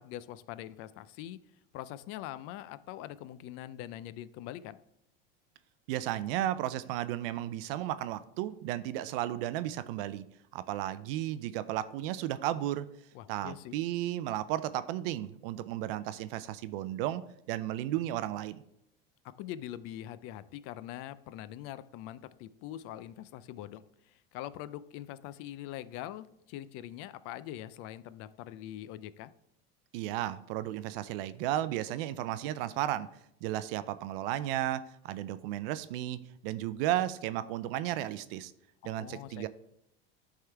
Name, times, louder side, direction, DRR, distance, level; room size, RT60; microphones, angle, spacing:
voice 1, 0.0-1.4 1.7-4.8 13.1-13.8 19.4-29.3 38.8-39.5, left 13 dB, 50° left, 15 dB, 0.4 m, -43 dB
voice 2, 5.9-10.2 10.5-12.9 13.3-18.6 29.9-33.1 33.4-38.5 38.8-39.5, right 13 dB, 70° right, 15 dB, 0.5 m, -34 dB
9.7 x 3.7 x 4.5 m, 0.78 s
supercardioid pair, 125°, 30 cm